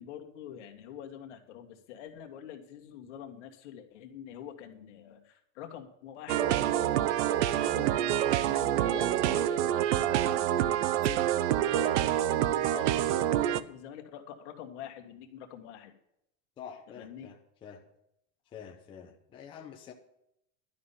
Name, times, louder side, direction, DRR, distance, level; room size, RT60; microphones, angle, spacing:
voice 1, 0.0-16.0 17.0-17.3, left 9 dB, 60° left, 1.8 m, -45 dB
sound 1, 6.3-13.6, right 12 dB, 60° right, 0.7 m, -27 dB
voice 2, 16.6-17.9 18.5-19.9, left 8 dB, 15° left, 0.6 m, -47 dB
11.5 x 5.7 x 8.5 m
supercardioid pair, 170°, 39 cm